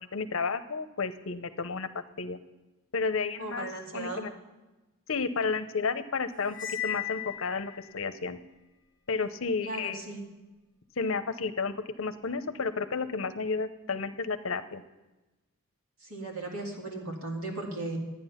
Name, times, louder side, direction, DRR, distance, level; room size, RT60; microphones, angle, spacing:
voice 1, 0.1-1.9 2.2-2.4 2.9-3.7 3.9-4.3 5.1-6.6 6.8-8.4 9.1-10.1 11.0-14.8, left 4 dB, 65° left, 11 dB, 0.7 m, -32 dB
voice 2, 3.4-4.2 9.6-10.2 16.0-18.0, right 2 dB, 75° right, 0 dB, 2.6 m, -36 dB
Cymbal, 6.5-7.9, left 11 dB, 20° left, 1.5 m, -36 dB
12.5 x 9.6 x 5.7 m, 1.1 s
head